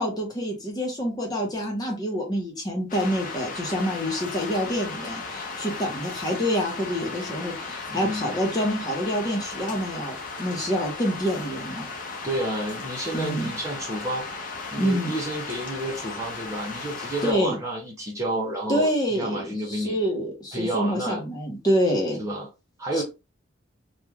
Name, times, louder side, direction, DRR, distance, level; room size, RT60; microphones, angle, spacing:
voice 1, 0.0-11.9 13.1-13.5 14.8-15.1 17.2-17.6 18.7-22.2 23.0-23.1, equal, 20° left, 1.0 m, -27 dB
sound 1, 2.9-17.3, left 4 dB, 45° left, 0.8 m, -36 dB
voice 2, 7.9-8.3 12.2-14.3 14.7-20.0 20.5-21.2 22.2-22.5 22.8-23.0, right 1 dB, 15° right, 0.7 m, -30 dB
3.0 x 2.6 x 3.5 m
head